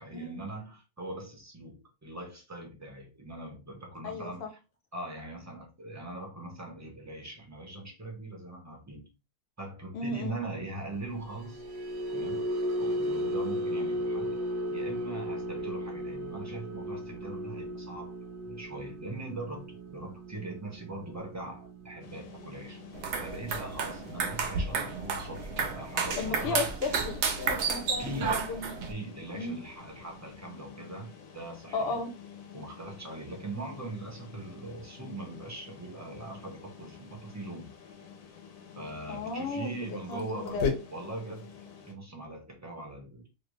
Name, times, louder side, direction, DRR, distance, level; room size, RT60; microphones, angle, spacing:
voice 1, 0.0-4.6 4.9-9.1 9.6-11.6 12.1-12.5 12.8-14.4 14.7-18.1 18.5-22.8 23.2-26.7 28.0-28.5 28.9-32.0 32.5-37.7 38.8-43.3, right 2 dB, 20° right, 0.4 m, -41 dB
voice 2, 4.0-4.5 9.9-10.4 26.2-28.8 29.3-29.6 31.7-32.1 39.1-39.8 40.1-40.7, left 3 dB, 55° left, 0.9 m, -34 dB
sound 1, 11.1-27.5 27.8-28.1 28.5-28.7, equal, 40° right, 1.0 m, -37 dB
sound 2, 22.0-41.9, left 5 dB, 75° left, 1.2 m, -44 dB
sound 3, 22.9-28.9, right 5 dB, 65° right, 0.7 m, -32 dB
3.1 x 2.5 x 3.1 m
omnidirectional pair, 1.6 m